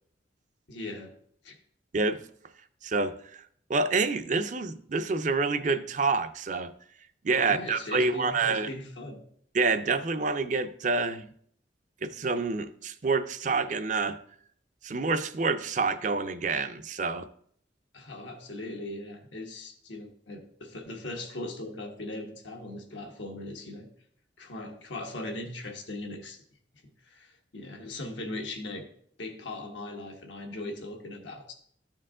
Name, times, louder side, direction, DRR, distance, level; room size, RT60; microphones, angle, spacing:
voice 1, 0.7-1.1 1.4-1.6 7.4-9.2 17.9-23.9 24.4-26.4 27.1-28.8 29.2-31.5, left 2 dB, 85° left, 2 dB, 1.4 m, -39 dB
voice 2, 2.8-3.4 3.7-6.7 7.2-8.7 9.5-11.3 12.0-14.2 14.8-17.3, right 4 dB, 40° right, 10 dB, 0.5 m, -27 dB
13.0 x 4.5 x 3.7 m, 0.63 s
head